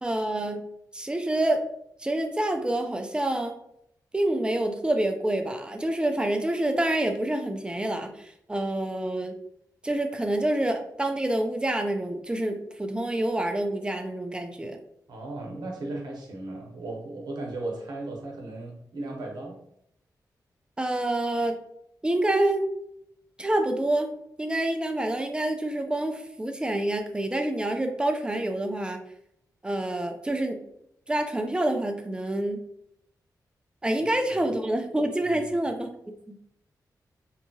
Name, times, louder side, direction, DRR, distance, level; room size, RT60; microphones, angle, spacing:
voice 1, 0.0-0.6 0.9-1.6 2.0-3.5 4.1-8.1 8.5-9.4 9.8-14.8 20.8-21.6 22.0-22.6 23.4-24.1 24.4-29.0 29.6-30.6 31.1-32.6 33.8-35.9 36.3-36.4, right 1 dB, 15° right, 5 dB, 0.3 m, -27 dB
voice 2, 15.1-19.6 34.4-34.5 35.2-35.5, right 2 dB, 85° right, 0 dB, 0.7 m, -36 dB
2.8 x 2.3 x 2.7 m, 0.75 s
wide cardioid pair, 100°, 7 cm